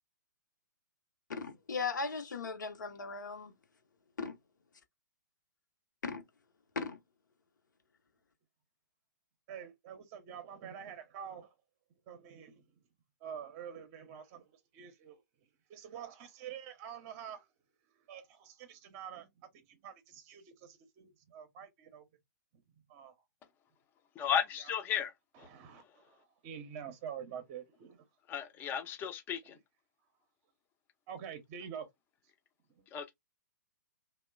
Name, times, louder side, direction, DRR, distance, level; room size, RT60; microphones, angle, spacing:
voice 1, 1.3-3.5 4.2-4.4 6.0-6.2 6.8-7.0, left 4 dB, 70° left, 0.7 m, -37 dB
voice 2, 9.5-11.5 12.1-12.6 13.2-15.2 15.7-17.5 18.1-22.1 22.9-23.1 24.6-24.7 25.3-28.0 31.1-31.9 32.8-32.9, right 8 dB, 30° right, 0.6 m, -47 dB
voice 3, 24.2-25.1 25.4-25.5 28.3-29.6 32.9-33.1, left 8 dB, 20° left, 0.5 m, -34 dB
2.8 x 2.0 x 2.3 m
figure-of-eight pair, 120°, 10 cm